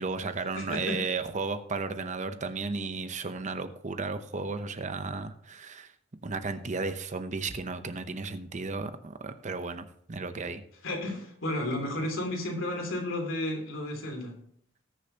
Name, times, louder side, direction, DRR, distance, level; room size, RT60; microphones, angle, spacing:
voice 1, 0.0-5.9 6.2-10.6, right 4 dB, 40° right, 10 dB, 0.7 m, -34 dB
voice 2, 0.5-1.0 10.8-14.4, left 1 dB, 80° left, 1 dB, 3.2 m, -32 dB
19.5 x 6.8 x 2.8 m, 0.67 s
head